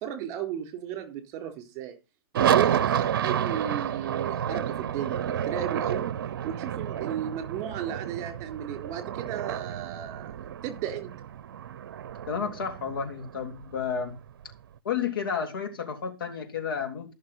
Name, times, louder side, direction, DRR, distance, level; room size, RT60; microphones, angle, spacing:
voice 1, 0.0-2.0 2.3-6.1 6.4-11.1, right 10 dB, 30° right, 4.2 m, -34 dB
sound 1, 2.4-14.5, right 9 dB, 60° right, 0.7 m, -30 dB
voice 2, 12.2-14.2 14.8-17.1, left 6 dB, 65° left, 2.9 m, -31 dB
14.5 x 6.5 x 5.5 m
hypercardioid pair, 135°, 13 cm